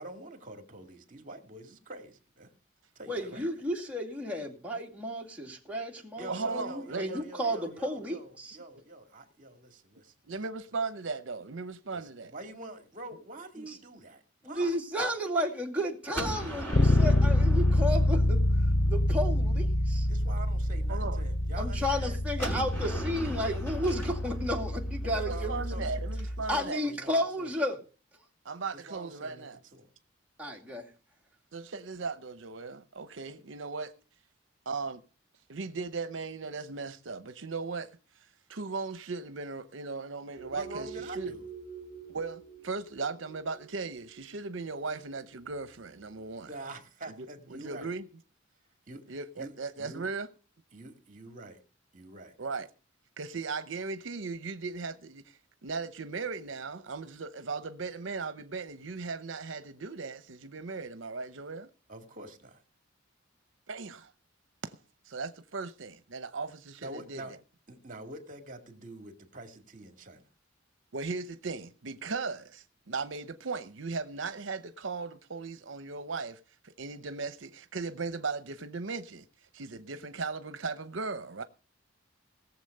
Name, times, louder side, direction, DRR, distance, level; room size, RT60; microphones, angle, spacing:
voice 1, 0.0-2.5 3.0-3.5 6.2-10.4 11.9-14.7 20.1-22.2 25.1-27.1 27.4-27.5 28.7-29.5 29.7-29.9 40.5-41.5 46.5-47.9 48.9-50.1 50.7-51.6 51.9-52.3 61.9-62.6 66.8-67.3 67.7-70.2, right 2 dB, 40° right, 2.2 m, -46 dB
voice 2, 3.1-8.6 13.6-13.8 14.4-18.5 18.9-20.1 21.6-25.9 26.5-27.8 30.4-30.9, equal, 5° right, 2.3 m, -33 dB
voice 3, 6.3-7.2 10.3-12.3 20.9-21.2 25.0-26.8 28.4-29.6 31.5-33.9 34.7-35.0 35.5-41.3 42.1-46.5 47.2-48.1 49.1-50.3 52.4-52.7 53.2-61.7 63.7-64.1 64.6-64.8 65.0-67.2 70.9-79.3 79.5-81.4, right 4 dB, 75° right, 0.8 m, -37 dB
Gunshot gunfire, 16.1-19.0 22.4-26.2, right 1 dB, 10° left, 5.3 m, -39 dB
Bass guitar, 16.7-26.6, left 1 dB, 30° left, 0.5 m, -27 dB
sound 1, 40.3-46.5, right 5 dB, 50° left, 4.0 m, -47 dB
18.0 x 7.2 x 6.6 m
head